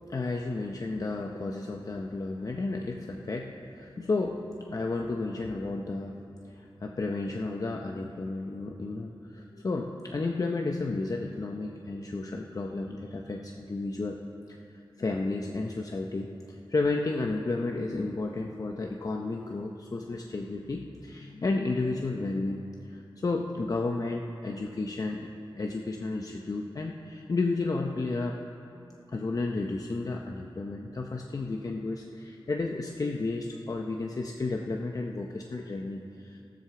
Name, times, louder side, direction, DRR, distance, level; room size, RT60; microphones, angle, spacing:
voice 1, 0.1-6.2 6.5-14.2 14.5-25.3 25.6-28.4 29.1-36.4, left 3 dB, 40° left, 2 dB, 0.7 m, -32 dB
13.5 x 7.7 x 6.9 m, 2.7 s
wide cardioid pair, 100°, 9 cm